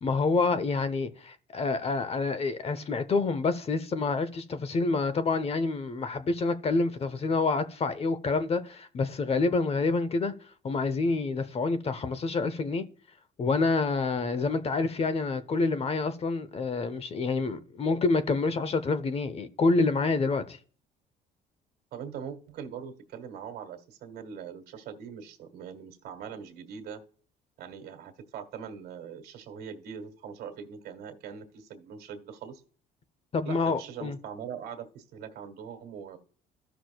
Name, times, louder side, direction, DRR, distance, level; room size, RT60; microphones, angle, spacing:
voice 1, 0.0-10.3 10.6-12.9 13.4-20.6 33.3-34.2, left 3 dB, 35° left, 0.8 m, -27 dB
voice 2, 21.9-27.0 27.6-32.6 33.4-36.2, right 7 dB, 70° right, 1.6 m, -42 dB
14.5 x 6.1 x 2.3 m
cardioid pair, 110°, 17 cm